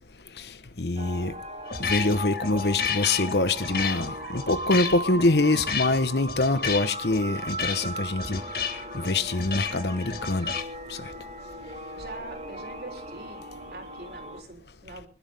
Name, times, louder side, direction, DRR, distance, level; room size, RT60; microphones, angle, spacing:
voice 1, 0.8-1.3 1.8-8.4 8.9-10.5 10.9-11.0, left 2 dB, 75° left, 1.1 m, -25 dB
sound 1, 1.0-14.4, right 1 dB, 40° right, 3.1 m, -38 dB
sound 2, 1.7-10.6, left 6 dB, 60° left, 1.8 m, -32 dB
voice 2, 11.9-13.4 13.7-15.1, right 2 dB, 65° right, 3.6 m, -43 dB
25.0 x 11.5 x 3.6 m
head